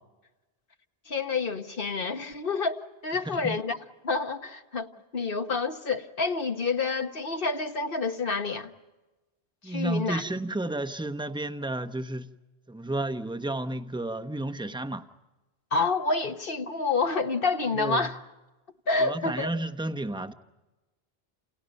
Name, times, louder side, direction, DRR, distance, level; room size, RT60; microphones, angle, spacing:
voice 1, 1.1-3.8 4.0-4.9 5.1-8.7 9.6-10.2 15.7-18.2 18.9-19.5, left 4 dB, 60° left, 1.5 m, -28 dB
voice 2, 3.2-3.6 9.6-12.3 12.7-15.1 17.7-18.1 19.0-20.3, right 2 dB, 5° right, 0.9 m, -32 dB
30.0 x 29.0 x 5.3 m
omnidirectional pair, 1.0 m